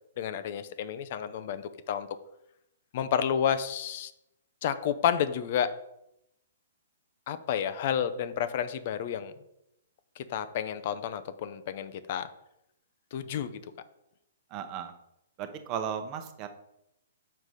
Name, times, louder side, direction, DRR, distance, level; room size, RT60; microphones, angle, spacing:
voice 1, 0.2-2.1 2.9-4.1 4.6-5.7 7.3-9.3 10.2-12.3 13.1-13.6, left 9 dB, 50° left, 12 dB, 0.5 m, -30 dB
voice 2, 14.5-14.9 15.4-16.5, right 8 dB, 35° right, 8 dB, 0.8 m, -35 dB
6.5 x 4.7 x 4.1 m, 0.83 s
hypercardioid pair, 125°, 0 cm